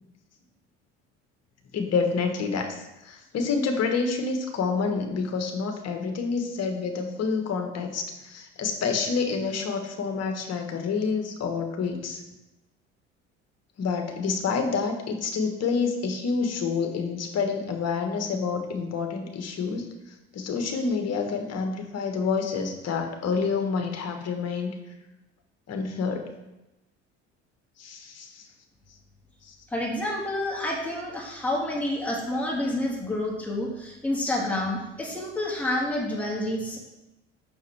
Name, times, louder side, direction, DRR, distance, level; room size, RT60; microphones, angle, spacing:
voice 1, 1.7-12.2 13.8-19.8 20.3-24.8 25.7-26.3 27.8-28.5 29.4-29.5, left 5 dB, 45° left, 4 dB, 1.4 m, -28 dB
voice 2, 29.7-36.8, left 1 dB, 5° left, -4 dB, 2.0 m, -29 dB
6.3 x 6.2 x 3.4 m, 0.96 s
hypercardioid pair, 60°, 35 cm